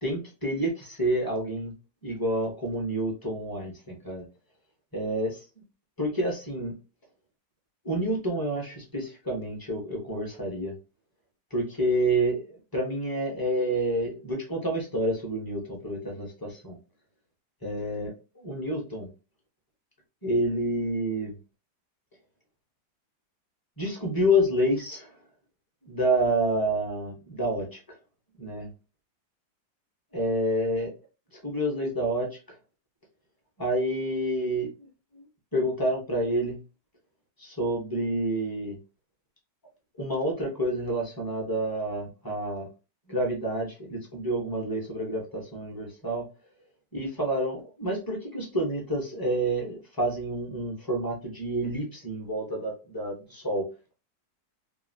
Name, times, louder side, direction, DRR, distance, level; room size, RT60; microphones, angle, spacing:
voice 1, 0.0-1.7 2.0-4.3 4.9-5.4 6.0-6.7 7.8-10.7 11.5-16.8 17.6-18.1 18.4-19.1 20.2-21.3 23.8-25.1 25.8-27.8 28.4-28.7 30.1-30.9 31.3-32.4 33.6-34.9 35.1-35.3 35.5-36.6 37.4-38.8 40.0-42.7 43.1-46.2 46.9-53.7, right 1 dB, 20° left, -1 dB, 0.6 m, -28 dB
3.0 x 2.7 x 2.7 m, 0.30 s
omnidirectional pair, 1.9 m